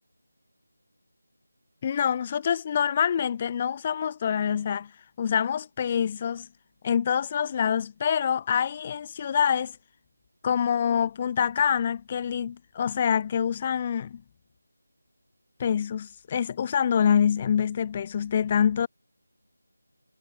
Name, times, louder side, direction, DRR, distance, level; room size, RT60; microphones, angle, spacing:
voice 1, 1.8-4.9 5.2-6.5 6.8-9.8 10.4-14.2 15.6-18.9, left 8 dB, 20° left, 1.3 m, -26 dB
figure-of-eight pair, 170°, 0 cm